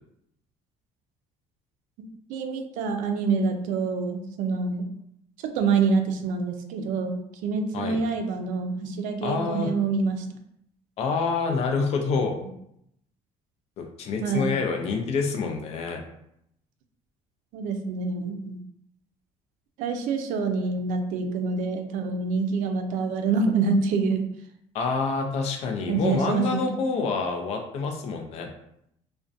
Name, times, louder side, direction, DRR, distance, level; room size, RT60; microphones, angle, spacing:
voice 1, 2.3-4.9 5.4-10.2 14.2-14.5 17.5-18.6 19.8-24.3 25.9-26.6, right 4 dB, 80° right, 5 dB, 0.4 m, -26 dB
voice 2, 9.2-9.7 11.0-12.3 13.8-16.0 24.7-28.5, left 4 dB, 55° left, 3 dB, 0.4 m, -27 dB
2.4 x 2.1 x 2.5 m, 0.75 s
cardioid pair, 140°, 13 cm